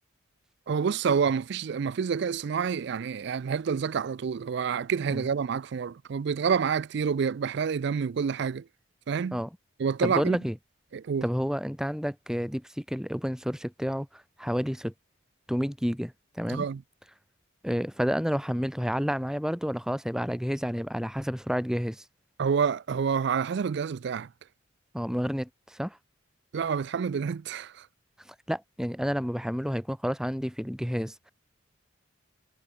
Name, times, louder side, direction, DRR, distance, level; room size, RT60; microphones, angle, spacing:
voice 1, 0.7-8.6 9.1-9.4 9.8-10.4 10.9-11.2 16.5-16.8 22.4-24.3 26.5-27.7, right 6 dB, 55° right, 0.4 m, -28 dB
voice 2, 10.0-10.6 11.2-14.9 15.5-16.7 17.6-22.0 24.9-26.0 28.5-31.1, equal, 5° right, 2.3 m, -30 dB
head